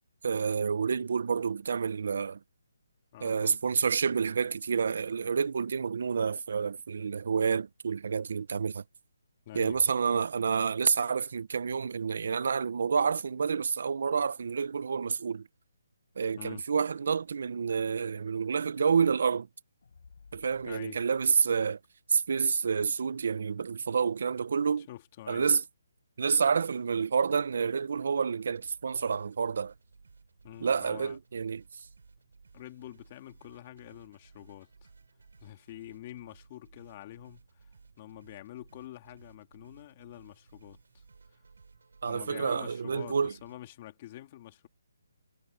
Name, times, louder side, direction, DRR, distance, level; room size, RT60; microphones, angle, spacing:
voice 1, 0.2-2.4 3.2-8.8 9.5-15.5 16.2-19.5 20.3-21.8 22.1-24.9 25.3-25.6 26.2-29.7 30.6-31.9 42.0-43.3, right 6 dB, 50° right, 0.6 m, -29 dB
voice 2, 3.1-3.6 9.5-9.8 16.4-16.6 20.6-21.0 24.9-25.5 30.4-31.2 32.5-34.9 35.4-37.7 38.0-41.0 42.1-44.7, left 14 dB, 25° left, 2.6 m, -47 dB
Fire, 19.8-22.3, left 5 dB, 65° left, 6.9 m, -58 dB
sound 1, 28.5-43.6, right 4 dB, 75° right, 5.2 m, -58 dB
hypercardioid pair, 175°, 0 cm